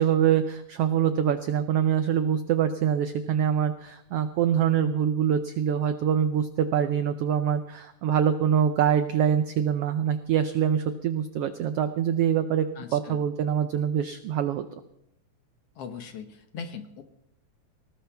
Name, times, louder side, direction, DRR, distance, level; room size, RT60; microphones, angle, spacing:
voice 1, 0.0-12.7 12.9-14.7, right 9 dB, 90° right, 10 dB, 1.3 m, -24 dB
voice 2, 12.8-13.2 15.8-17.0, left 6 dB, 60° left, 7 dB, 1.8 m, -40 dB
19.0 x 19.0 x 3.5 m, 0.82 s
omnidirectional pair, 3.5 m